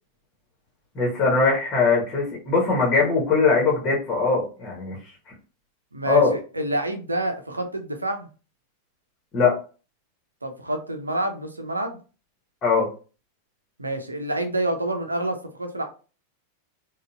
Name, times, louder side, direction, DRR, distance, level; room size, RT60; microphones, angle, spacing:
voice 1, 0.9-4.9 6.1-6.3 9.3-9.6 12.6-12.9, left 4 dB, 30° left, -2 dB, 1.2 m, -21 dB
voice 2, 5.9-8.3 10.4-12.0 13.8-15.8, right 1 dB, 80° right, 6 dB, 0.6 m, -28 dB
3.9 x 2.4 x 2.4 m, 0.35 s
figure-of-eight pair, 90°, 0 cm